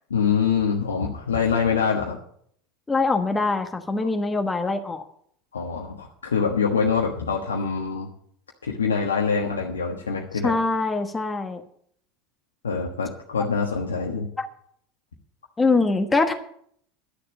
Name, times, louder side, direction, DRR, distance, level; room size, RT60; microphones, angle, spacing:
voice 1, 0.1-2.2 4.0-4.1 5.5-8.1 8.6-10.5 12.6-14.3, left 5 dB, 85° left, 0 dB, 1.3 m, -24 dB
voice 2, 2.9-5.0 10.4-11.6 14.4-14.5 15.6-16.3, left 3 dB, 15° left, 6 dB, 1.2 m, -23 dB
11.5 x 6.8 x 8.5 m, 0.66 s
hypercardioid pair, 80°, 0 cm